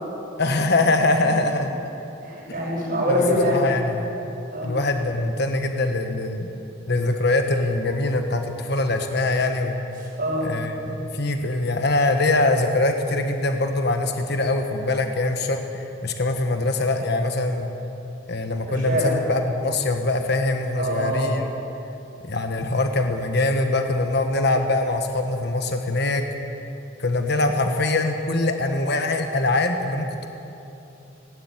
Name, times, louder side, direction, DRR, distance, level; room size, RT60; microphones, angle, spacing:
voice 1, 0.4-1.8 3.0-4.1 4.6-6.5 6.9-9.8 10.4-17.7 18.3-21.4 22.2-26.2 27.0-30.3, left 2 dB, 55° left, 5 dB, 1.4 m, -23 dB
voice 2, 2.2-3.6 4.5-4.7 10.0-10.5 18.9-19.1 20.8-21.3, equal, 45° right, -3 dB, 5.7 m, -24 dB
18.0 x 17.5 x 9.8 m, 3.0 s
head